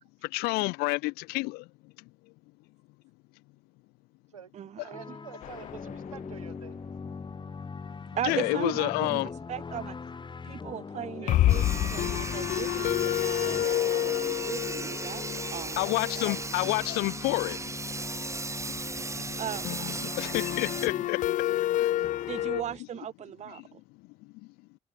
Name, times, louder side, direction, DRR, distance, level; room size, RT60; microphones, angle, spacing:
voice 1, 0.2-1.9 8.2-9.3 15.3-15.4 15.7-17.7 18.6-18.7 20.2-22.2 23.6-23.7 24.0-24.3, left 25 dB, 65° left, 1.8 m, -30 dB
voice 2, 4.3-6.8 11.0-11.9 19.0-19.6 20.0-20.5, right 8 dB, 85° right, 7.6 m, -49 dB
sound 1, 4.9-21.1 22.0-22.8, left 5 dB, 25° left, 1.6 m, -41 dB
sound 2, 5.4-6.6 6.9-7.0 7.3-7.4 11.3-16.9 19.7-22.6, left 14 dB, 50° left, 0.4 m, -29 dB
voice 3, 8.1-10.0 10.4-15.9 16.2-16.7 19.4-19.9 22.3-23.8, right 10 dB, 40° right, 0.8 m, -38 dB
Sawing, 11.5-20.9, right 3 dB, 15° right, 1.1 m, -37 dB
figure-of-eight pair, 45°, 17 cm